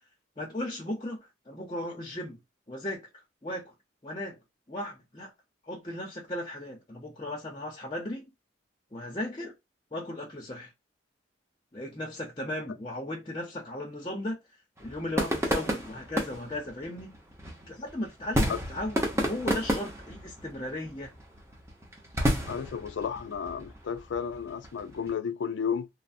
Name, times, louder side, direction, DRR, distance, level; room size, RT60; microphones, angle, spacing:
voice 1, 0.4-2.4 2.7-3.1 3.4-3.7 4.0-4.4 4.7-5.3 5.6-8.3 8.9-9.5 9.9-10.7 11.7-14.4 14.8-17.2 17.7-21.1, left 1 dB, 25° left, 0.6 m, -36 dB
sound 1, 14.8-25.1, equal, 15° right, 0.7 m, -32 dB
voice 2, 22.5-25.9, left 7 dB, 70° left, 0.3 m, -33 dB
3.1 x 2.0 x 2.5 m
head